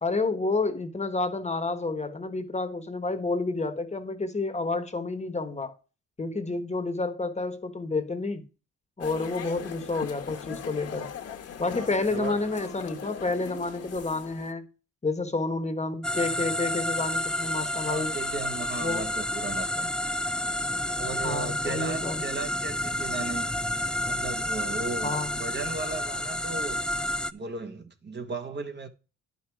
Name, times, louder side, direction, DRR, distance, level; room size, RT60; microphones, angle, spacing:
voice 1, 0.0-5.7 6.2-8.5 9.0-11.1 11.6-14.6 15.0-18.1 18.8-19.1 21.2-22.2 25.0-25.3, left 3 dB, 20° left, 1.3 m, -30 dB
sound 1, 9.0-14.5, left 8 dB, 50° left, 1.4 m, -39 dB
voice 2, 11.7-12.4 17.8-19.9 21.0-23.5 24.1-26.8 27.3-28.9, right 3 dB, 35° right, 1.3 m, -36 dB
sound 2, 16.0-27.3, left 1 dB, 5° left, 0.4 m, -30 dB
10.5 x 5.5 x 4.7 m
cardioid pair, 90°, 30 cm